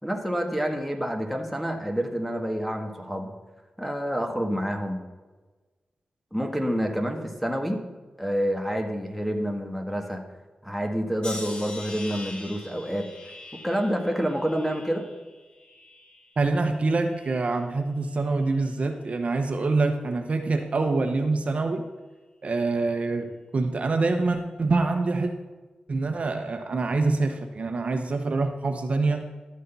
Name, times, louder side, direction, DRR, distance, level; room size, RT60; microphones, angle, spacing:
voice 1, 0.0-3.3 3.8-5.0 6.3-7.8 8.2-10.2 10.6-13.1 13.6-15.0, equal, ahead, 3 dB, 1.6 m, -28 dB
sound 1, 11.2-16.4 16.8-17.5 18.2-18.5, left 2 dB, 35° left, 1.7 m, -43 dB
voice 2, 16.4-21.8 22.4-25.3 25.9-29.2, right 3 dB, 50° right, 5 dB, 1.0 m, -25 dB
12.0 x 6.6 x 5.5 m, 1.3 s
wide cardioid pair, 90°, 3 cm